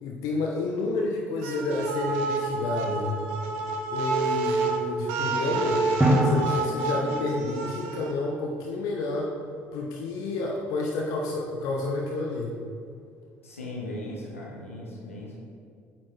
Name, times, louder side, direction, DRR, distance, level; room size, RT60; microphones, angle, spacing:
voice 1, 0.0-3.3 3.9-5.8 6.1-9.3 9.7-12.5, left 2 dB, 60° left, -1 dB, 0.7 m, -30 dB
sound 1, 1.4-8.1, right 3 dB, 65° right, 0.6 m, -29 dB
Drum, 6.0-7.8, right 1 dB, 10° right, 1.2 m, -25 dB
voice 2, 13.4-15.4, left 1 dB, 85° left, -3 dB, 1.1 m, -38 dB
8.5 x 4.3 x 3.2 m, 2.3 s
figure-of-eight pair, 55°, 7 cm